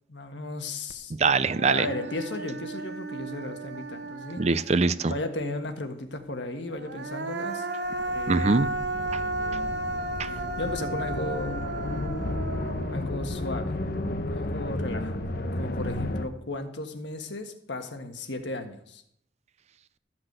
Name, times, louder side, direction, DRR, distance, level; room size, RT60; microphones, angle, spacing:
voice 1, 0.1-1.1 1.6-4.4 5.1-7.7 8.1-8.8 10.3-11.6 12.9-13.7 14.2-19.0, left 2 dB, 75° left, 6 dB, 1.5 m, -35 dB
Human voice, 0.9-1.0 1.3-5.0 6.7-13.9, right 2 dB, 70° right, 1.0 m, -34 dB
voice 2, 1.2-1.9 4.4-5.1 8.3-8.7 9.1-9.2 10.2-10.3, right 4 dB, 35° right, 15 dB, 0.5 m, -23 dB
sound 1, 7.8-16.2, left 1 dB, 55° left, 1.0 m, -32 dB
13.5 x 6.0 x 8.0 m, 0.71 s
head